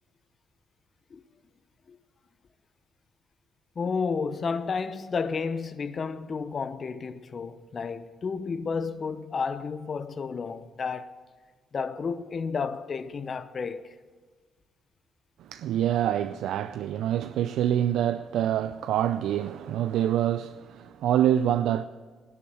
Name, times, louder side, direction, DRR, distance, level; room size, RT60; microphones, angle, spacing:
voice 1, 3.8-11.1 11.7-13.9, left 5 dB, 45° left, 0.8 m, -31 dB
voice 2, 15.4-21.8, right 11 dB, 80° right, 0.4 m, -26 dB
19.0 x 8.6 x 7.0 m
cardioid pair, 90°, 0 cm